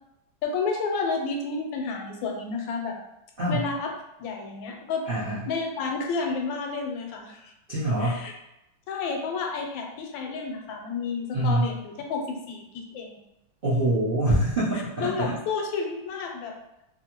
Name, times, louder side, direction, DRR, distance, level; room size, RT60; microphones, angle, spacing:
voice 1, 0.4-3.0 3.5-3.9 4.2-5.1 5.5-7.5 8.0-8.3 8.9-13.2 15.0-16.5, left 4 dB, 90° left, 2 dB, 1.3 m, -31 dB
voice 2, 5.1-5.4 7.7-8.2 11.3-11.7 13.6-15.3, right 1 dB, 65° right, -10 dB, 0.5 m, -25 dB
2.9 x 2.6 x 2.8 m, 0.86 s
omnidirectional pair, 2.0 m